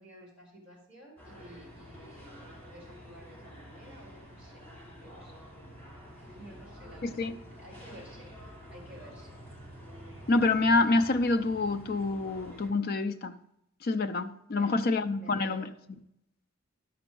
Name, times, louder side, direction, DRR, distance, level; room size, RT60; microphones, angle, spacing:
voice 1, 0.0-4.6 5.0-5.4 6.2-8.3 8.7-9.4 14.5-14.8 15.2-15.7, right 1 dB, 5° right, 3.4 m, -52 dB
sound 1, 1.2-12.7, equal, 10° left, 2.5 m, -48 dB
voice 2, 7.0-7.4 10.3-13.3 13.8-15.7, left 3 dB, 45° left, 0.4 m, -27 dB
11.5 x 5.0 x 3.8 m
head